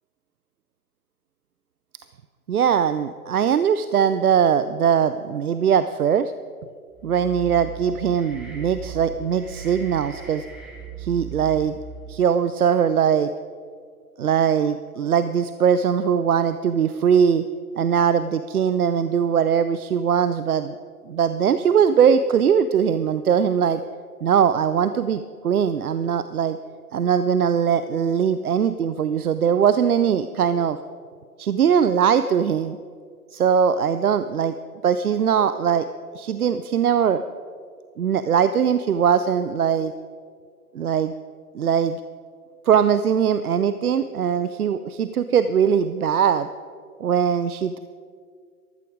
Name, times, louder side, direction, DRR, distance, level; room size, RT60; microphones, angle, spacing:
voice 1, 2.5-6.3 7.0-10.5 11.0-11.8 12.1-13.3 14.2-17.4 17.8-20.7 21.1-23.8 24.2-26.6 26.9-30.8 31.4-32.8 33.3-34.5 34.8-35.8 36.1-37.2 38.0-39.9 40.7-41.1 41.5-42.0 42.7-46.5 47.0-47.8, right 7 dB, 70° right, 12 dB, 0.7 m, -21 dB
sound 1, 6.9-12.2, right 8 dB, ahead, 1.4 m, -38 dB
13.5 x 13.5 x 5.0 m, 2.1 s
figure-of-eight pair, 130°, 47 cm